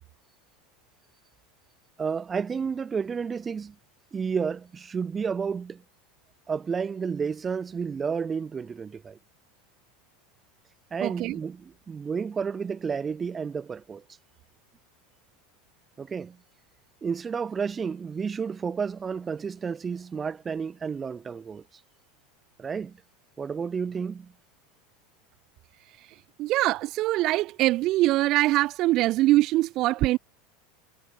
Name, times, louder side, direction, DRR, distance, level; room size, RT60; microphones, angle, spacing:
voice 1, 2.0-3.8 4.1-5.8 6.5-9.2 10.9-14.0 16.0-16.4 17.0-21.6 22.6-23.0 23.4-24.3, right 6 dB, 25° right, 5.5 m, -31 dB
voice 2, 11.0-11.4 26.4-30.2, right 17 dB, 50° right, 4.9 m, -23 dB
hypercardioid pair, 85°, 0 cm